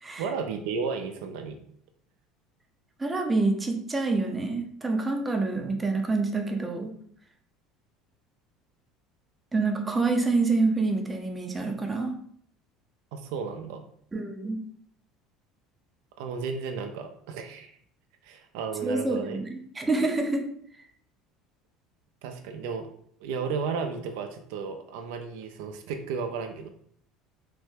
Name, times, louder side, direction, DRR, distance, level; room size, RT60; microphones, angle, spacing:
voice 1, 0.2-1.6 13.1-13.8 16.2-17.7 18.2-19.4 22.2-22.9 23.2-26.7, right 5 dB, 80° right, 6 dB, 0.4 m, -33 dB
voice 2, 3.0-6.9 9.5-12.1 14.1-14.6 18.8-20.4, right 3 dB, 15° right, 3 dB, 0.5 m, -27 dB
3.2 x 2.1 x 3.3 m, 0.63 s
supercardioid pair, 115°, 0 cm